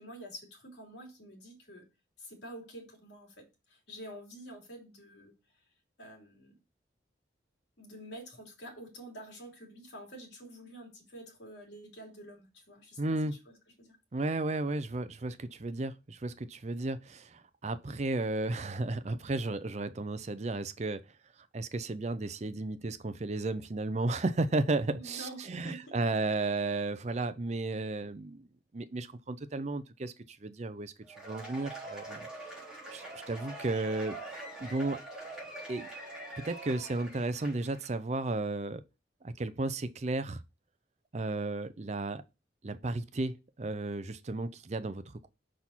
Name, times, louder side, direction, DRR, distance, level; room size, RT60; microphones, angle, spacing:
voice 1, 0.0-1.9 2.2-5.6 6.0-6.5 7.8-14.0 24.9-26.0, right 1 dB, 65° left, 3.1 m, -48 dB
voice 2, 13.0-13.3 14.1-21.0 21.5-28.5 28.7-32.3 32.9-34.2 34.6-35.0 35.7-35.9 36.4-38.8 39.2-40.4 41.1-42.2 42.6-45.0, right 2 dB, 35° right, 0.5 m, -33 dB
Cheering / Applause / Crowd, 31.1-37.9, right 2 dB, 5° right, 3.3 m, -44 dB
6.3 x 5.6 x 4.4 m
head